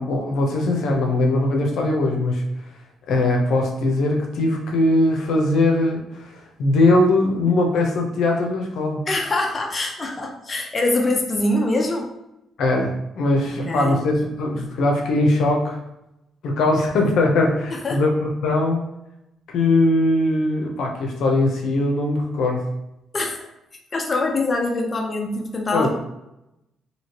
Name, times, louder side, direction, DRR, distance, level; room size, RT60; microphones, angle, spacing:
voice 1, 0.0-2.4 3.1-9.1 12.6-15.8 16.4-18.8 19.5-22.7 25.7-25.9, left 2 dB, 75° left, 1 dB, 0.6 m, -20 dB
voice 2, 9.1-12.1 13.6-14.0 17.7-18.1 23.1-23.5 23.9-25.9, left 2 dB, 30° left, 1 dB, 0.5 m, -24 dB
3.1 x 2.8 x 2.9 m, 0.88 s
cardioid pair, 90°, 0 cm